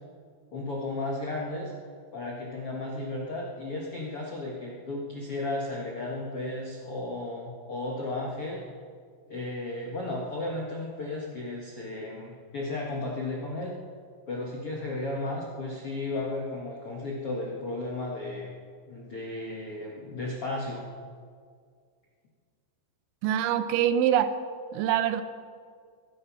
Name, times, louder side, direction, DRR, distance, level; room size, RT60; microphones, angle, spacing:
voice 1, 0.5-1.7 2.1-8.6 9.3-13.7 14.3-18.5 18.9-20.9, left 2 dB, 65° left, -2 dB, 1.4 m, -34 dB
voice 2, 23.2-24.3 24.7-25.2, right 10 dB, 85° right, 11 dB, 3.2 m, -24 dB
23.0 x 10.0 x 6.1 m, 2.1 s
omnidirectional pair, 5.3 m